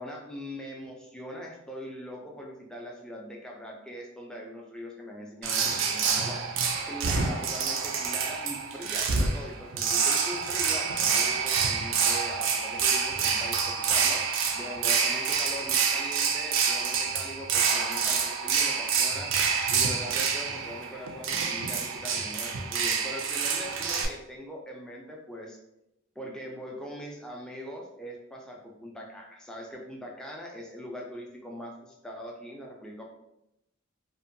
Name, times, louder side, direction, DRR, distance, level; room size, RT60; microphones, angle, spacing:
voice 1, 0.0-14.3 14.5-25.6 26.2-33.0, equal, 5° left, -1 dB, 0.3 m, -41 dB
sound 1, 5.4-24.1, right 6 dB, 75° right, 0.4 m, -27 dB
2.6 x 2.2 x 2.5 m, 0.85 s
head